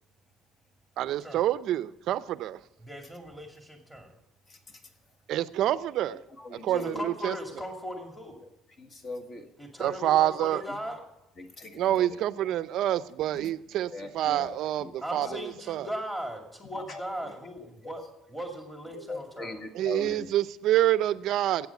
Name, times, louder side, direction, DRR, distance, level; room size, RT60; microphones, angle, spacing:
voice 1, 1.0-2.6 5.3-6.2 6.5-7.4 9.8-10.6 11.7-15.9 19.7-21.7, right 13 dB, 55° right, 0.5 m, -27 dB
voice 2, 2.8-4.1 6.7-8.4 9.6-11.0 15.0-19.6, equal, 5° left, 2.3 m, -38 dB
voice 3, 6.4-7.0 8.8-9.4 10.7-10.8 11.4-12.1 12.4-12.5 13.3-13.5 13.9-14.9 15.2-15.3 16.7-17.0 18.9-20.3, left 2 dB, 30° left, 1.6 m, -40 dB
13.0 x 8.7 x 8.2 m
cardioid pair, 150°, 0 cm